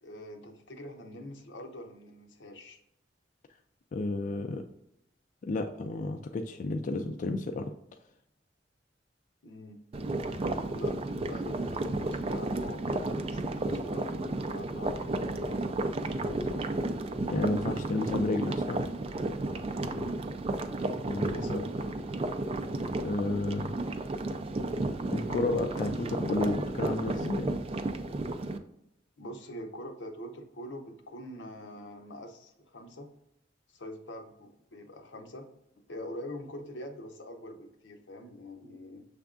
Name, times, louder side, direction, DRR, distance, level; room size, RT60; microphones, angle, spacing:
voice 1, 0.0-2.8 9.4-9.8 10.7-11.0 11.3-16.7 19.8-20.2 21.3-21.9 29.2-33.1 33.7-35.5 35.9-39.0, left 1 dB, 85° left, 5 dB, 0.7 m, -44 dB
voice 2, 3.9-4.6 5.4-7.7 17.3-18.8 21.1-21.6 23.0-23.7 25.1-27.5, left 2 dB, 45° left, 5 dB, 0.3 m, -31 dB
sound 1, 9.9-28.6, right 2 dB, 35° right, 0.3 m, -33 dB
6.3 x 3.5 x 2.4 m, 0.82 s
head